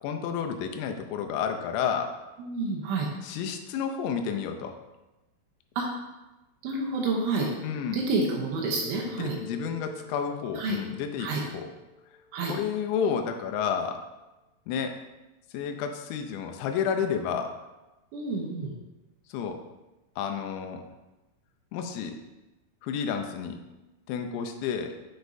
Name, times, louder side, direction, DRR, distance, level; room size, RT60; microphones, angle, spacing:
voice 1, 0.0-2.1 3.2-4.8 7.6-8.0 9.1-11.7 12.5-14.0 14.7-15.0 15.5-17.5 19.3-19.6 20.2-20.8 21.7-22.2 22.8-23.6 24.1-24.9, left 7 dB, 85° left, 5 dB, 3.3 m, -31 dB
voice 2, 2.4-3.1 5.8-5.9 6.6-7.5 7.9-9.4 10.6-10.8 11.2-11.4 12.3-12.5 18.1-18.7, right 3 dB, 80° right, 0 dB, 2.9 m, -29 dB
Mallet percussion, 8.7-12.9, left 3 dB, 60° left, 1.7 m, -48 dB
10.0 x 5.3 x 2.6 m, 1.1 s
omnidirectional pair, 5.9 m